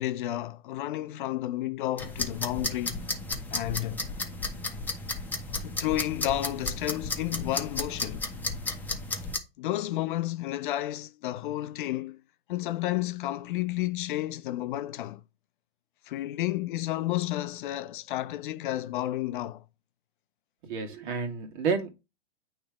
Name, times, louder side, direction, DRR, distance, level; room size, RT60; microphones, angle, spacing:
voice 1, 0.0-3.1 3.5-4.0 5.6-8.2 9.6-12.2 12.5-15.2 16.1-19.6, left 14 dB, 55° left, 0.5 m, -31 dB
sound 1, 2.0-9.4, left 3 dB, 5° left, 1.0 m, -33 dB
voice 2, 20.7-21.9, right 5 dB, 55° right, 1.9 m, -30 dB
8.6 x 3.3 x 4.7 m
hypercardioid pair, 120°, 30 cm